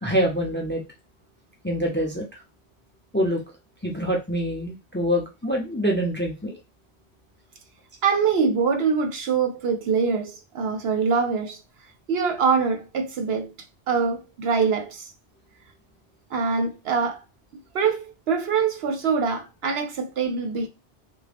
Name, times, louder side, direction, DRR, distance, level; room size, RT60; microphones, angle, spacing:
voice 1, 0.0-0.8 1.6-2.2 3.1-3.4 3.8-6.6, equal, 15° left, 0.6 m, -25 dB
voice 2, 8.0-11.6 12.1-13.5 13.9-15.1 16.3-17.2 17.7-20.7, right 5 dB, 65° right, 0.8 m, -24 dB
3.6 x 2.2 x 3.4 m
omnidirectional pair, 1.2 m